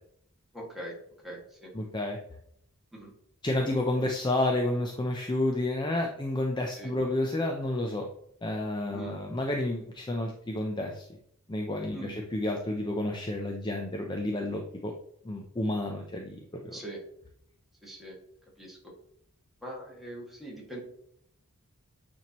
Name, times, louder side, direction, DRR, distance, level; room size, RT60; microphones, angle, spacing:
voice 1, 0.5-0.9 1.2-1.7 2.9-3.1 6.8-6.9 8.9-9.2 11.9-12.1 16.7-17.0 17.8-18.2 18.6-18.8 19.6-20.8, right 1 dB, ahead, -4 dB, 2.0 m, -42 dB
voice 2, 1.7-2.2 3.4-8.1 8.4-11.1 11.5-14.9 15.2-16.8, left 1 dB, 20° left, 2 dB, 0.6 m, -30 dB
9.1 x 4.4 x 3.0 m, 0.70 s
head